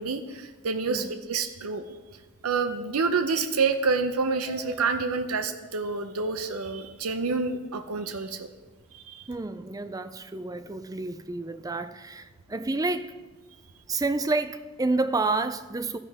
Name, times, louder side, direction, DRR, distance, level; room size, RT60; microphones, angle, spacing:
voice 1, 0.0-1.8 2.4-8.5 8.9-9.2, right 4 dB, 90° right, 0.7 m, -28 dB
voice 2, 0.9-1.2 4.5-4.9 9.3-13.2 13.9-16.0, right 3 dB, 15° right, 0.4 m, -30 dB
13.0 x 10.5 x 3.5 m
head